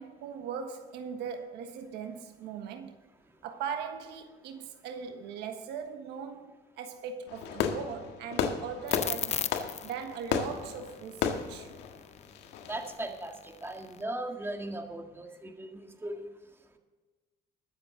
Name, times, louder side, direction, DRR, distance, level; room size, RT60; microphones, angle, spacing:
voice 1, 0.0-3.0 3.4-9.5 9.8-11.7, right 7 dB, 85° right, 1.5 m, -40 dB
Fireworks, 7.3-12.9, left 7 dB, 90° left, 1.7 m, -34 dB
sound 1, 8.9-14.0, left 8 dB, 40° left, 0.6 m, -37 dB
voice 2, 12.7-16.3, right 1 dB, 15° right, 1.9 m, -38 dB
21.0 x 7.8 x 3.9 m
cardioid pair, 110°, 17 cm